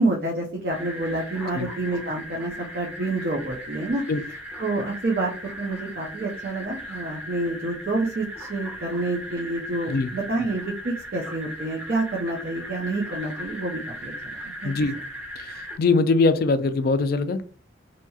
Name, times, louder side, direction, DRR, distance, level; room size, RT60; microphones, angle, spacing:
voice 1, 0.0-4.0 4.6-5.3 5.6-14.7, right 2 dB, 50° right, 0.5 m, -28 dB
sound 1, 0.7-15.8, equal, 10° right, 1.1 m, -38 dB
voice 2, 14.6-15.0 15.4-15.5 15.8-17.4, left 3 dB, 50° left, 0.3 m, -21 dB
2.7 x 2.7 x 2.3 m
head